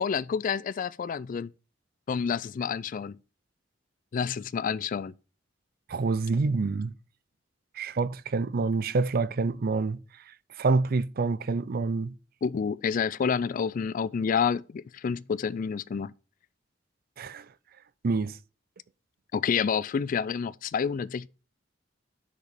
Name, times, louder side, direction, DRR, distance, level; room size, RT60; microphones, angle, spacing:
voice 1, 0.0-1.5 2.1-3.2 4.1-5.1 12.4-16.1 19.3-21.3, left 6 dB, 45° left, 0.3 m, -29 dB
voice 2, 5.9-6.9 7.8-10.0 10.6-12.2 17.2-17.5 18.0-18.4, right 3 dB, 55° right, 0.5 m, -27 dB
6.6 x 5.1 x 7.0 m
head